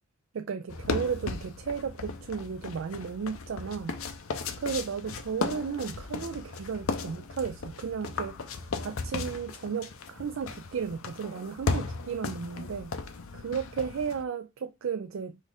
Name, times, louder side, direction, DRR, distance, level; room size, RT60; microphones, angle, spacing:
voice 1, 0.3-4.0 4.6-8.3 8.8-12.9 13.3-15.4, right 6 dB, 65° right, 0.4 m, -34 dB
sound 1, 0.7-14.2, left 4 dB, 75° left, 0.6 m, -36 dB
5.0 x 2.4 x 4.0 m
head